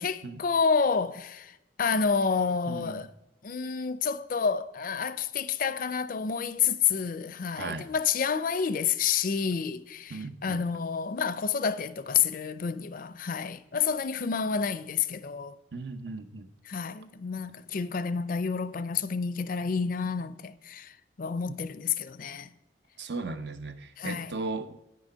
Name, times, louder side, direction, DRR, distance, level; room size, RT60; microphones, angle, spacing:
voice 1, 0.0-3.1 3.4-15.6 16.6-22.5 24.0-24.3, left 6 dB, 50° left, 0.5 m, -29 dB
voice 2, 2.7-3.1 7.6-7.9 10.1-10.6 15.7-16.5 23.0-24.8, right 3 dB, 70° right, 0.7 m, -37 dB
9.6 x 6.2 x 5.6 m
head